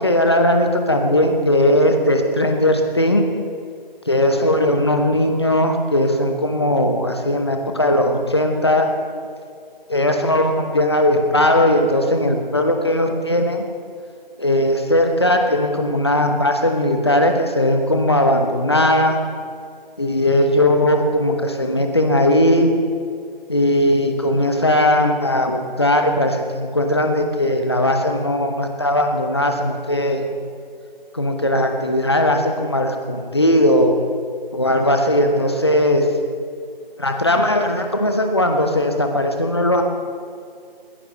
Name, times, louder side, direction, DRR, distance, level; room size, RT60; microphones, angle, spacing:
voice 1, 0.0-3.3 4.1-8.9 9.9-13.7 14.4-19.2 20.0-22.7 23.5-30.2 31.1-34.0 34.5-36.1 37.0-39.8, left 1 dB, 25° left, 5 dB, 1.0 m, -18 dB
19.5 x 16.0 x 3.2 m, 2.2 s
figure-of-eight pair, 165°, 29 cm